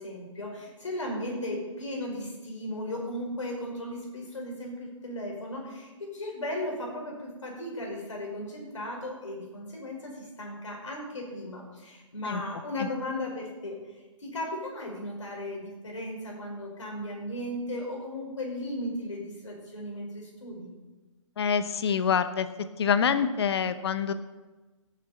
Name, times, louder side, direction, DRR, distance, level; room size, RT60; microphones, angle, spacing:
voice 1, 0.0-13.8 14.2-20.7, left 1 dB, 70° left, -1 dB, 5.2 m, -36 dB
voice 2, 21.4-22.5 22.8-24.1, left 7 dB, 50° left, 12 dB, 0.9 m, -26 dB
17.0 x 9.4 x 4.3 m, 1.2 s
figure-of-eight pair, 125°, 17 cm